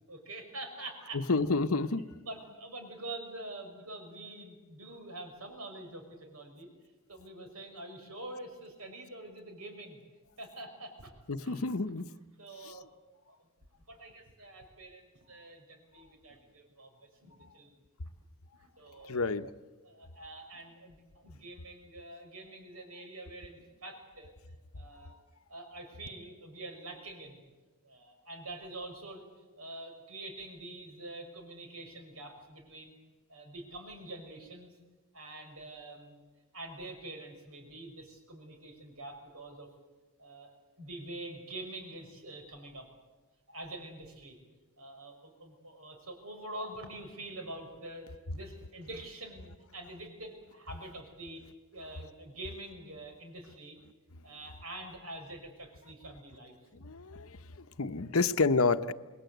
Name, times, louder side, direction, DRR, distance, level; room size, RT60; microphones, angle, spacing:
voice 1, 0.1-1.2 2.3-6.7 7.1-10.0 10.4-11.6 12.4-12.9 13.3-13.4 13.9-17.7 18.6-19.3 19.8-24.3 24.7-25.2 25.5-27.4 27.8-29.3 29.6-33.0 33.3-34.7 35.1-36.2 36.5-39.7 40.2-42.9 43.5-44.4 44.8-51.5 51.7-53.8 54.2-56.6, right 2 dB, 75° right, 5 dB, 6.0 m, -46 dB
voice 2, 1.1-2.1 11.3-12.1 12.6-12.8 19.0-19.5 56.7-58.9, left 3 dB, 70° left, 11 dB, 0.9 m, -29 dB
27.5 x 21.0 x 8.0 m, 1.2 s
head